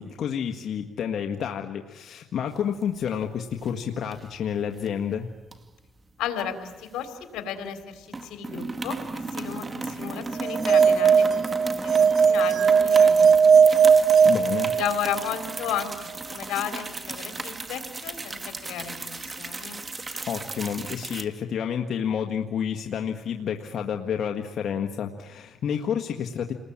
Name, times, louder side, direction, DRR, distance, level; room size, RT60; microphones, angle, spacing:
voice 1, 0.0-5.3 14.2-14.7 20.3-26.5, left 8 dB, 65° left, 3 dB, 1.7 m, -29 dB
sound 1, 2.6-3.2 3.5-3.7 4.1-4.9 5.5-7.4 7.7-7.8 8.1-21.2, right 3 dB, 25° right, 2.2 m, -36 dB
voice 2, 6.2-13.3 13.8-13.9 14.7-19.8, left 9 dB, 85° left, 7 dB, 3.5 m, -34 dB
sound 2, 10.4-15.2, right 6 dB, 55° right, 1.0 m, -18 dB
29.5 x 20.5 x 8.8 m, 1.2 s
cardioid pair, 90°, 0 cm